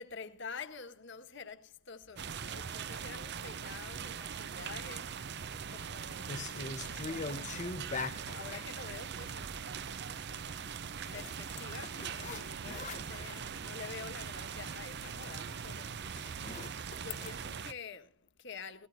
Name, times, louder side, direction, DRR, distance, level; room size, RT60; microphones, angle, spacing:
voice 1, 0.0-10.8 11.1-18.9, left 5 dB, 60° left, 1.6 m, -49 dB
sound 1, 2.2-17.7, right 7 dB, 55° right, 0.7 m, -41 dB
sound 2, 5.5-5.9 6.2-8.7 11.0-13.6 14.0-14.2 14.5-17.3, left 4 dB, 35° left, 0.9 m, -43 dB
19.5 x 17.0 x 2.7 m
head